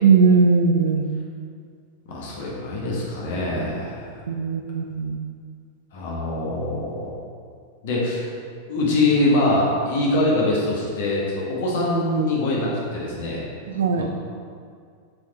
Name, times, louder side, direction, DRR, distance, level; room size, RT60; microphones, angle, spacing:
voice 1, 0.0-1.1 4.3-5.2 13.7-14.1, right 5 dB, 65° right, 7 dB, 0.5 m, -18 dB
voice 2, 2.0-4.0 5.9-6.9 7.8-8.2 8.7-13.4 13.9-14.1, left 2 dB, 55° left, -4 dB, 1.6 m, -23 dB
7.8 x 4.2 x 4.2 m, 2.1 s
figure-of-eight pair, 90°, 0 cm